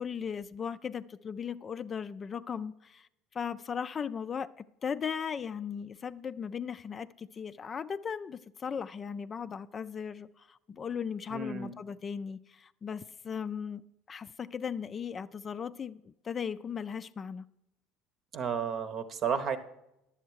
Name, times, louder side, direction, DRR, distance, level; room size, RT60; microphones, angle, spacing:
voice 1, 0.0-17.4, left 7 dB, 35° left, 0.3 m, -37 dB
voice 2, 11.3-11.7 18.3-19.6, right 6 dB, 50° right, 0.9 m, -32 dB
10.5 x 7.2 x 4.6 m
hypercardioid pair, 75°, 0 cm